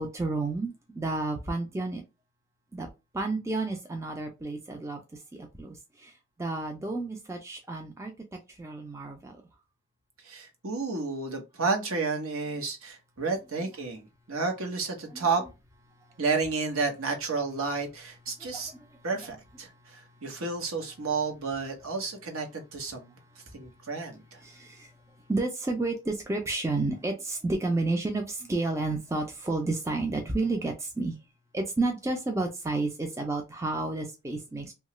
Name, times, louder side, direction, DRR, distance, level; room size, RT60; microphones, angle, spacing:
voice 1, 0.0-2.0 2.7-2.9 3.1-5.0 5.3-5.7 6.0-6.1 6.4-8.1 8.6-9.3 15.1-15.3 18.5-18.6 24.4-24.9 25.3-31.1 31.5-34.7, right 2 dB, 15° right, 0.4 m, -31 dB
voice 2, 10.2-15.4 16.2-18.7 19.0-23.1 23.5-24.4, right 4 dB, 70° right, 0.9 m, -31 dB
2.8 x 2.3 x 3.0 m
head